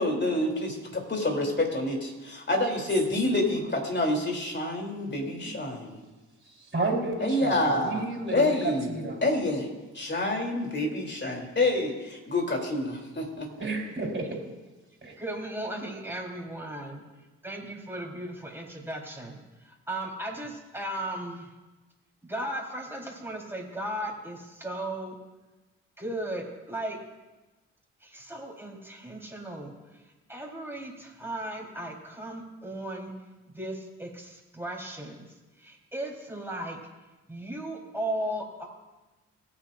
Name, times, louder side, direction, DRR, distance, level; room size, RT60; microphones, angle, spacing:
voice 1, 0.0-6.0 7.2-8.0 8.3-9.7 9.9-13.5, left 2 dB, 30° left, 1 dB, 3.2 m, -27 dB
voice 2, 5.2-5.5 6.5-9.2 13.6-14.4 15.0-15.1, right 3 dB, 30° right, -1 dB, 4.1 m, -32 dB
voice 3, 15.2-17.0 17.4-19.4 19.6-21.5 22.2-25.2 26.0-27.0 28.0-29.7 30.3-33.1 33.5-35.2 35.6-36.8 37.3-38.6, right 1 dB, 5° right, -2 dB, 4.0 m, -36 dB
20.5 x 9.2 x 2.6 m, 1.2 s
hypercardioid pair, 40°, 35 cm